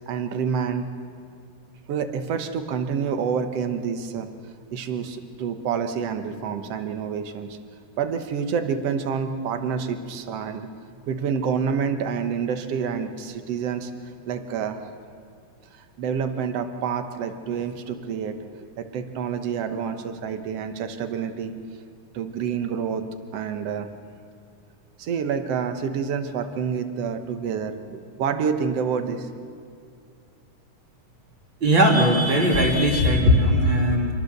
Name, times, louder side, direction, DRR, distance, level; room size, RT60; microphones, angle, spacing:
voice 1, 0.1-0.9 1.9-4.3 4.7-7.6 8.0-10.7 11.1-13.9 14.3-14.8 15.7-18.4 18.8-21.5 22.1-23.0 23.3-23.9 25.0-29.3, right 6 dB, 60° right, 8 dB, 1.9 m, -28 dB
voice 2, 31.6-34.1, equal, 35° right, 0 dB, 3.1 m, -18 dB
26.0 x 21.5 x 6.7 m, 2.2 s
omnidirectional pair, 3.8 m